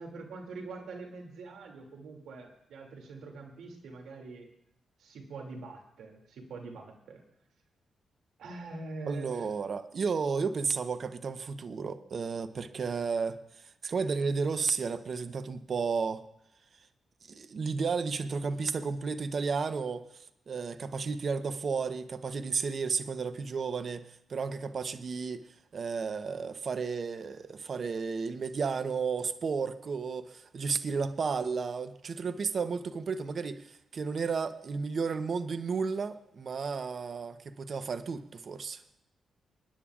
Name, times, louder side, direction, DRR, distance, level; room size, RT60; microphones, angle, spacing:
voice 1, 0.0-4.5 5.0-7.2 8.4-9.5, right 3 dB, 80° right, 2.6 m, -44 dB
voice 2, 9.1-16.2 17.3-25.5 25.7-38.8, right 5 dB, 55° right, 0.8 m, -33 dB
28.0 x 10.0 x 2.5 m
cardioid pair, 65°, 0 cm